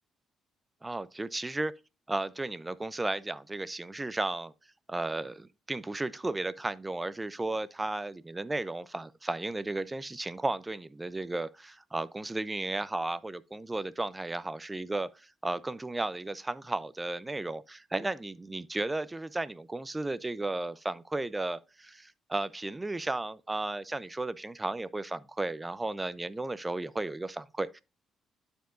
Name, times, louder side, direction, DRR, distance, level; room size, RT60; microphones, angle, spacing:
voice 1, 0.8-1.7 2.1-4.5 4.9-27.8, right 2 dB, 15° right, 0.5 m, -34 dB
12.5 x 4.5 x 2.5 m
cardioid pair, 90°, 0 cm